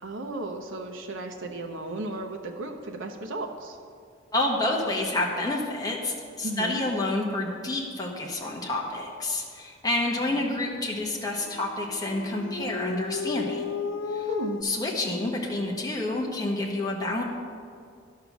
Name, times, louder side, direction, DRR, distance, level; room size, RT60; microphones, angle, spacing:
voice 1, 0.0-3.8 6.4-6.8 10.3-10.5 14.3-14.6, right 1 dB, 80° right, 3 dB, 0.8 m, -34 dB
voice 2, 4.3-13.7 14.1-14.3 14.6-17.2, left 2 dB, 20° left, -2 dB, 1.2 m, -29 dB
Dog, 11.2-14.6, left 5 dB, 75° left, 0.5 m, -34 dB
11.0 x 5.7 x 6.0 m, 2.2 s
head